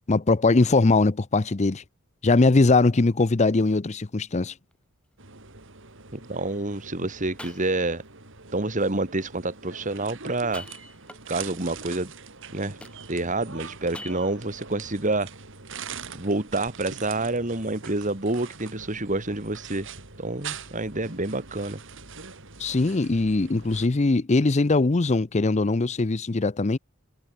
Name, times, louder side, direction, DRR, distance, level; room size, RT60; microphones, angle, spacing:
voice 1, 0.1-1.8 2.2-4.5 22.6-26.8, left 3 dB, 30° left, 0.6 m, -21 dB
sound 1, 3.1-3.4 3.9-4.0 4.7-4.8 6.8-6.9 7.4-8.1 10.4-11.5 12.8-13.4 13.9-14.6, left 1 dB, 5° left, 2.9 m, -44 dB
sound 2, 5.2-23.9, right 5 dB, 60° right, 3.6 m, -43 dB
voice 2, 6.1-8.0 8.5-10.7 11.3-12.1 12.5-12.8 13.1-15.3 16.1-19.9 20.2-21.8, right 2 dB, 35° right, 2.3 m, -28 dB
head